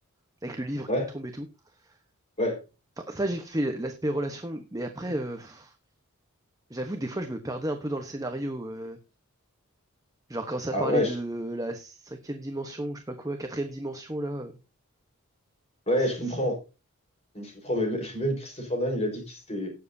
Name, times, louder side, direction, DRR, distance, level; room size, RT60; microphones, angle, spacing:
voice 1, 0.4-0.9 1.1-1.5 3.1-5.7 6.7-9.0 10.3-14.5 16.0-16.1 16.4-16.5, right 1 dB, 15° right, 1.0 m, -32 dB
voice 2, 10.7-11.1 15.9-16.6 17.3-19.7, equal, 30° left, 4.8 m, -27 dB
18.0 x 7.4 x 2.7 m
head